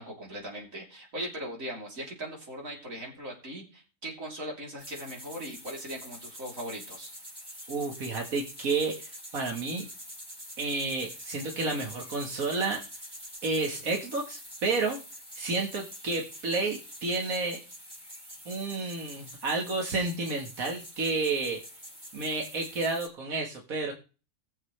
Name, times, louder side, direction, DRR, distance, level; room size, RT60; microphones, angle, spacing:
voice 1, 0.0-7.1, right 1 dB, 75° right, -2 dB, 3.7 m, -39 dB
sound 1, 4.8-23.1, equal, 15° right, 4.4 m, -46 dB
voice 2, 7.7-9.9 10.6-12.8 13.4-15.0 15.4-17.6 18.5-21.6 22.1-23.9, right 3 dB, 90° right, 0 dB, 1.9 m, -31 dB
19.0 x 7.4 x 3.2 m, 0.35 s
omnidirectional pair, 1.4 m